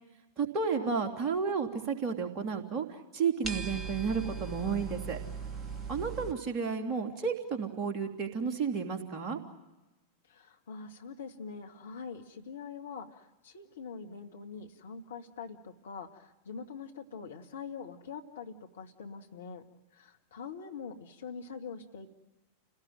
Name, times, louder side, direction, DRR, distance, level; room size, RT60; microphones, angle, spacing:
voice 1, 0.4-2.8 3.1-5.2 5.9-9.4, right 5 dB, 30° right, 3 dB, 3.2 m, -32 dB
sound 1, 3.4-6.3, right 5 dB, 15° right, 2.6 m, -39 dB
voice 2, 10.3-19.6 19.9-22.1, left 5 dB, 65° left, 4 dB, 2.0 m, -44 dB
29.0 x 18.0 x 9.1 m, 1.1 s
figure-of-eight pair, 90°, 0 cm